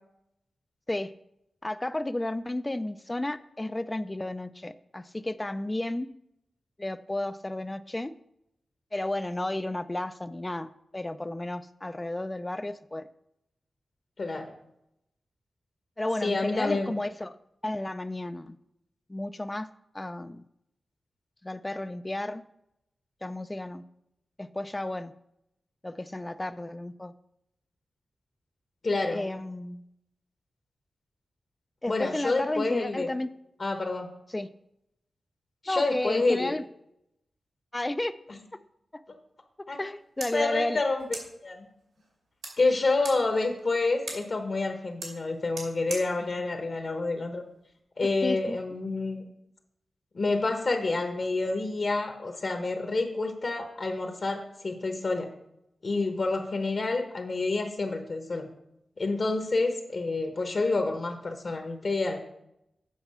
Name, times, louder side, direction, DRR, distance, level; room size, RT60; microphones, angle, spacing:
voice 1, 1.6-6.1 6.8-8.1 8.9-13.1 16.0-17.3 17.6-18.6 19.1-19.7 19.9-20.4 21.4-22.4 23.2-23.8 24.4-25.1 25.8-27.1 29.1-29.8 31.8-33.3 34.3-34.5 35.7-36.6 37.7-38.1 38.9-39.0 39.8-40.8 48.2-48.6, left 1 dB, 20° left, 13 dB, 0.3 m, -32 dB
voice 2, 14.2-14.5 16.2-16.9 28.8-29.2 31.9-33.1 33.6-34.1 35.6-36.5 38.3-38.4 39.7-39.8 40.3-41.2 41.4-41.7 42.6-47.4 48.0-49.3 50.1-55.3 55.8-58.5 59.0-62.2, left 3 dB, 50° left, 4 dB, 1.0 m, -28 dB
sound 1, 39.8-47.8, right 2 dB, 85° right, 2.5 m, -45 dB
8.1 x 5.4 x 5.5 m, 0.81 s
wide cardioid pair, 100°, 0 cm